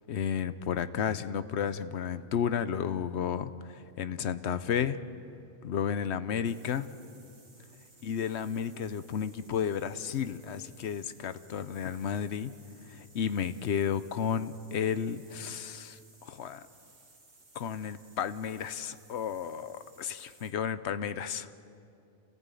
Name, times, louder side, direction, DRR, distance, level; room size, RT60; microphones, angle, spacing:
voice 1, 0.1-5.0 5.6-6.9 8.0-12.5 12.9-16.6 17.5-21.5, left 8 dB, 85° left, 13 dB, 1.0 m, -32 dB
sound 1, 6.4-20.6, right 3 dB, 60° right, 2.4 m, -60 dB
28.0 x 15.0 x 8.4 m, 2.7 s
omnidirectional pair, 1.1 m